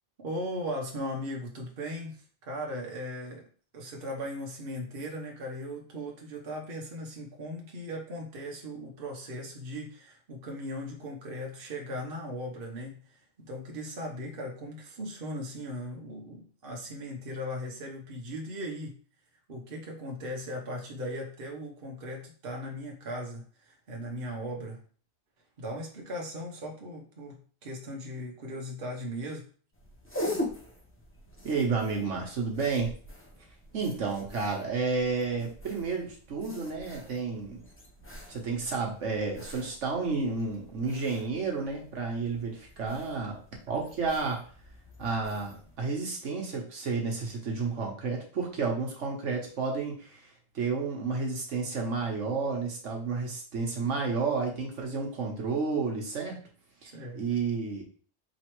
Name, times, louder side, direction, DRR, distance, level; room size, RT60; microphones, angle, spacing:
voice 1, 0.2-3.5 3.7-19.0 19.5-24.8 25.6-29.5 56.9-57.2, equal, 50° right, 0 dB, 1.1 m, -38 dB
sound 1, 29.7-45.8, left 1 dB, 15° left, 0.6 m, -43 dB
voice 2, 31.4-32.9 33.7-37.6 38.3-43.4 43.7-44.4 45.0-56.4 56.8-57.8, right 4 dB, 70° right, 0 dB, 1.3 m, -31 dB
4.9 x 3.2 x 3.0 m, 0.42 s
omnidirectional pair, 1.3 m